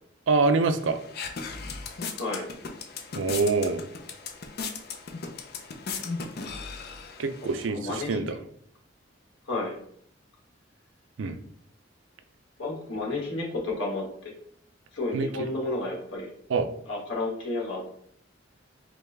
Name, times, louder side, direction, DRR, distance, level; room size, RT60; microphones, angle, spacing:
voice 1, 0.3-1.0 3.2-3.8 7.2-8.4 11.2-11.4 15.1-15.5 16.5-16.7, right 4 dB, 75° right, 9 dB, 0.4 m, -25 dB
sound 1, 0.8-7.7, left 4 dB, 55° left, 0.5 m, -37 dB
voice 2, 7.4-8.3 9.5-9.8 12.6-14.0 14.9-16.3 16.9-17.8, left 2 dB, 75° left, -1 dB, 1.4 m, -31 dB
5.0 x 2.3 x 3.3 m, 0.64 s
head